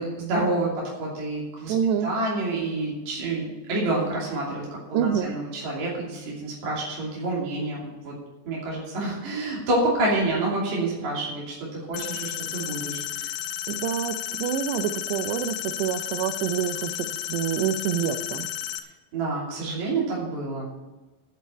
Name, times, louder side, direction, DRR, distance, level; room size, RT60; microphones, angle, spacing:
voice 1, 0.0-1.7 2.0-4.6 4.9-8.1 8.5-13.3 19.1-20.7, right 2 dB, 45° right, -5 dB, 3.7 m, -28 dB
voice 2, 1.7-2.1 4.9-5.4 13.7-18.5, right 9 dB, 80° right, 11 dB, 2.6 m, -27 dB
sound 1, 11.9-18.8, left 11 dB, 85° left, 3.1 m, -32 dB
9.1 x 7.8 x 8.6 m, 1.1 s
omnidirectional pair, 5.3 m